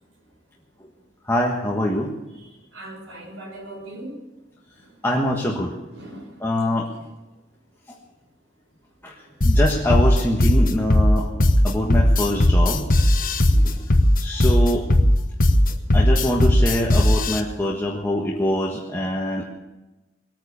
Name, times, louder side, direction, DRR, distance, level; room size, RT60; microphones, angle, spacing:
voice 1, 1.2-2.1 5.0-5.7 6.4-6.9 9.0-12.9 13.2-13.3 13.6-13.8 14.2-14.9 15.9-19.5, left 1 dB, 10° left, -2 dB, 1.4 m, -24 dB
voice 2, 2.7-4.1 5.9-6.2 13.5-13.8, right 1 dB, 75° right, 0 dB, 5.7 m, -39 dB
sound 1, 9.4-17.4, left 1 dB, 45° left, 1.2 m, -17 dB
20.5 x 9.3 x 6.8 m, 1.1 s
head